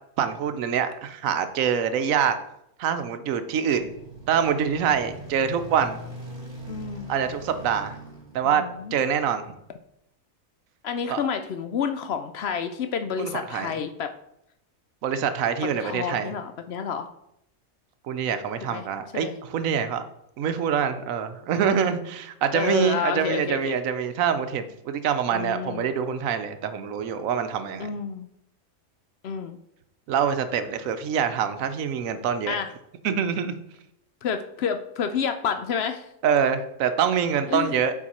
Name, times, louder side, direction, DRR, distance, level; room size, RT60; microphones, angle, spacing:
voice 1, 0.2-2.4 2.8-3.9 4.3-6.0 7.1-8.0 8.3-8.6 8.9-9.4 11.1-11.2 13.2-13.7 15.0-16.3 18.1-20.0 20.4-27.9 30.1-32.6 33.0-33.5 36.2-37.9, right 7 dB, 75° right, 10 dB, 1.0 m, -25 dB
sound 1, 3.8-9.2, right 1 dB, 30° right, 2.3 m, -41 dB
voice 2, 6.7-7.1 8.4-8.9 10.8-14.1 15.8-17.1 18.7-18.8 19.1-19.3 22.5-23.7 25.3-25.9 27.8-28.3 29.2-29.6 32.5-32.7 34.2-36.1 37.5-37.7, left 7 dB, 65° left, 8 dB, 0.6 m, -29 dB
7.3 x 4.5 x 4.2 m, 0.78 s
omnidirectional pair, 1.5 m